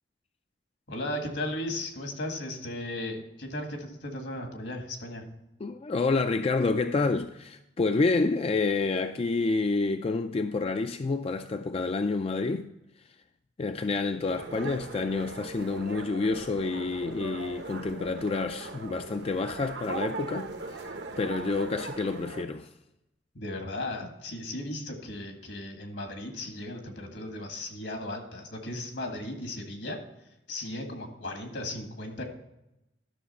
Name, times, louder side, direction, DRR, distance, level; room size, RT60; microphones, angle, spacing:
voice 1, 0.9-5.3 23.4-30.0 30.5-32.2, left 1 dB, 75° left, 1.8 m, -36 dB
voice 2, 5.6-12.7 13.0-13.1 13.6-22.7, left 3 dB, 30° left, 0.3 m, -28 dB
sound 1, 14.4-22.4, right 3 dB, 65° right, 0.9 m, -39 dB
12.0 x 6.2 x 4.2 m
head